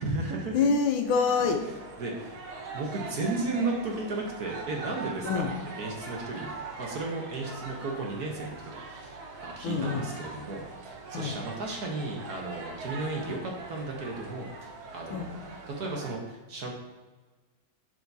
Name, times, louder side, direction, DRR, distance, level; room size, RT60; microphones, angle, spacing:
voice 1, 0.0-0.6 2.0-2.4 2.7-6.5 6.8-15.4 15.7-16.7, right 3 dB, 55° right, 0 dB, 1.4 m, -34 dB
voice 2, 0.5-1.6 5.2-5.5 9.6-10.0 11.1-11.3 15.1-15.3, left 5 dB, 90° left, 5 dB, 1.6 m, -26 dB
sound 1, 1.1-16.1, right 3 dB, 85° right, 1.9 m, -42 dB
11.0 x 4.6 x 2.7 m, 1.3 s
omnidirectional pair, 2.2 m